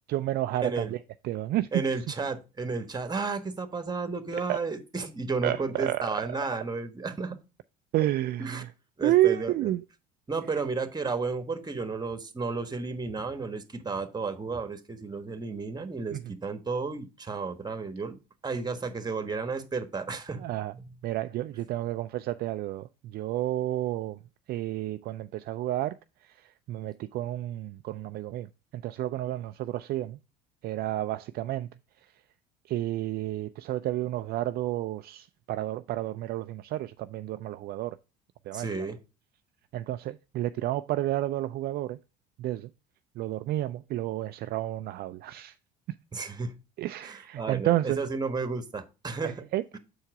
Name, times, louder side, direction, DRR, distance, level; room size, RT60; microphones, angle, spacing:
voice 1, 0.1-1.0 1.2-1.8 4.5-4.6 5.4-6.0 7.9-8.7 9.0-9.8 16.1-16.3 20.4-20.7 21.0-24.2 24.5-26.0 26.7-28.5 28.7-30.2 30.6-31.7 32.7-38.0 38.5-38.9 39.7-42.0 42.4-42.7 43.2-45.5 46.8-48.0 49.2-49.6, right 14 dB, 50° right, 0.4 m, -30 dB
voice 2, 0.6-0.9 1.7-7.4 8.4-8.6 9.0-9.7 10.3-18.2 18.4-20.4 20.8-20.9 38.5-39.0 46.1-46.6 47.0-49.4 49.7-49.8, right 4 dB, 20° right, 1.4 m, -33 dB
7.0 x 4.5 x 4.8 m
hypercardioid pair, 70°, 21 cm